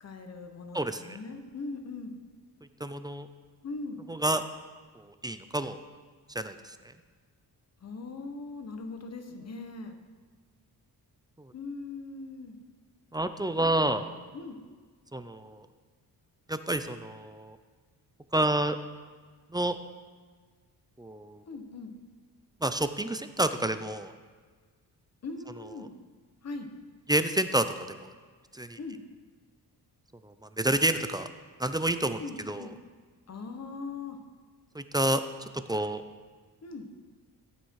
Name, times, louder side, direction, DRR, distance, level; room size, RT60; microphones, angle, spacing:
voice 1, 0.0-2.1 3.6-4.0 7.8-10.0 11.5-12.6 13.6-14.6 21.5-21.9 25.2-25.9 26.4-26.7 28.8-29.0 32.2-32.7 33.3-34.2 36.6-36.9, left 3 dB, 40° left, 6 dB, 1.3 m, -40 dB
voice 2, 0.7-1.2 2.8-3.3 4.1-4.4 5.0-5.8 6.3-6.7 11.4-11.5 13.1-14.0 15.1-15.7 16.5-17.6 18.3-18.8 19.5-19.8 21.0-21.4 22.6-24.1 27.1-28.1 28.5-28.8 30.2-31.3 31.6-32.7 34.7-35.2 35.7-36.0, right 1 dB, 10° right, 10 dB, 0.4 m, -29 dB
15.0 x 9.0 x 4.8 m, 1.5 s
wide cardioid pair, 140°, 40 cm